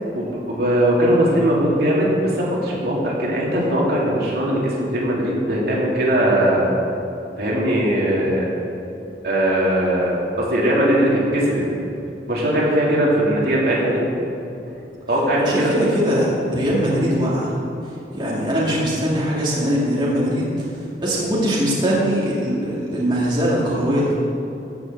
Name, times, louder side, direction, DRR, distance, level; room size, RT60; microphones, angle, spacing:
voice 1, 0.1-6.7 7.4-8.5 9.2-11.6 12.3-14.0 15.1-15.7, right 1 dB, 60° right, -5 dB, 2.9 m, -19 dB
voice 2, 15.4-17.5 18.1-24.1, equal, 25° right, -7 dB, 2.6 m, -21 dB
15.5 x 6.2 x 7.5 m, 2.8 s
head